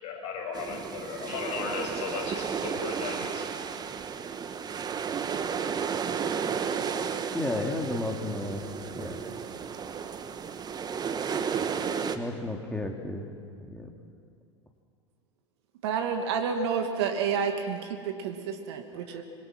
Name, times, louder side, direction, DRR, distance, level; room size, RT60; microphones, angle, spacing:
voice 1, 0.0-3.4, left 5 dB, 45° left, 1 dB, 6.7 m, -35 dB
sound 1, 0.5-12.2, right 6 dB, 25° right, 1.5 m, -33 dB
voice 2, 7.3-9.2 12.1-13.3 13.6-13.9 19.1-19.2, left 2 dB, 5° left, 2 dB, 2.9 m, -33 dB
voice 3, 15.8-19.2, right 6 dB, 60° right, 5 dB, 2.3 m, -29 dB
26.5 x 22.0 x 6.3 m, 2.3 s
figure-of-eight pair, 80°, 15 cm